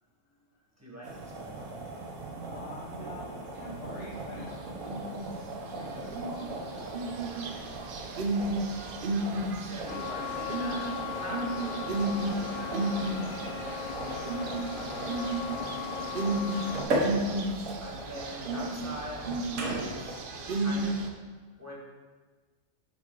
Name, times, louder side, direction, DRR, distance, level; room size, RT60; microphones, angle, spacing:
voice 1, 0.8-1.5 3.0-3.1 9.6-11.8 17.8-21.0 21.6-21.8, equal, 15° right, -5 dB, 1.2 m, -43 dB
sound 1, 1.0-20.2, right 2 dB, 80° right, 1.3 m, -38 dB
voice 2, 2.4-5.3 5.6-7.7 8.0-8.2 12.1-15.9 17.6-17.9 21.5-21.6, left 3 dB, 90° left, -8 dB, 1.5 m, -48 dB
sound 2, 4.0-4.4 4.8-5.4 5.9-21.1, right 2 dB, 55° right, 0.7 m, -33 dB
sound 3, 9.9-16.8, left 6 dB, 60° left, 0.6 m, -38 dB
6.9 x 4.3 x 3.8 m, 1.4 s
omnidirectional pair, 1.3 m